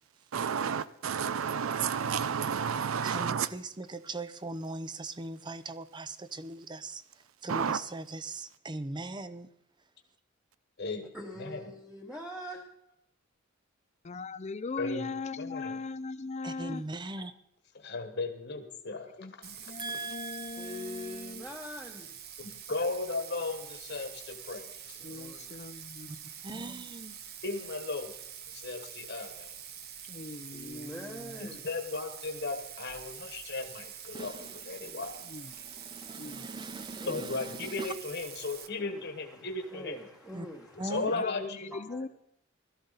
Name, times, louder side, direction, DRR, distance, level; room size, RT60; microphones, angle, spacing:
voice 1, 0.3-3.5 7.5-7.8, right 7 dB, 80° right, 0.5 m, -30 dB
voice 2, 3.0-7.0 7.4-9.5 16.4-17.3 19.8-21.2 26.1-26.2 26.4-27.2 34.1-35.0 35.5-37.9 40.3-40.5 40.8-41.1, right 2 dB, 20° right, 0.6 m, -40 dB
voice 3, 11.1-12.6 20.6-22.1 25.0-25.6 30.5-31.6 34.8-35.1 37.0-37.3 38.4-41.2 41.7-42.0, left 1 dB, 5° right, 1.2 m, -45 dB
voice 4, 14.0-16.8 19.2-21.4 25.0-26.1 30.0-31.6 35.2-35.5 36.2-36.5 41.1-42.1, left 3 dB, 35° left, 0.5 m, -40 dB
voice 5, 14.8-15.1 15.4-15.8 17.8-19.2 19.6-19.7 22.4-25.0 27.4-28.1 28.5-29.5 31.4-35.2 37.1-40.0 40.8-41.7, left 3 dB, 55° left, 1.3 m, -36 dB
Bathtub (filling or washing), 19.4-38.7, right 8 dB, 50° right, 0.9 m, -46 dB
16.5 x 13.0 x 4.0 m
head